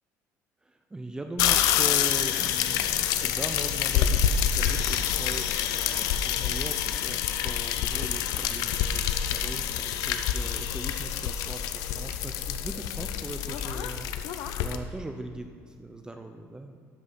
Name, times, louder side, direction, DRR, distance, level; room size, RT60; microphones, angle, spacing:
voice 1, 0.9-16.8, right 2 dB, 10° right, 5 dB, 0.6 m, -40 dB
sound 1, 1.4-14.8, left 9 dB, 80° left, 0.6 m, -27 dB
12.5 x 5.4 x 5.7 m, 2.2 s
cardioid pair, 125°, 6 cm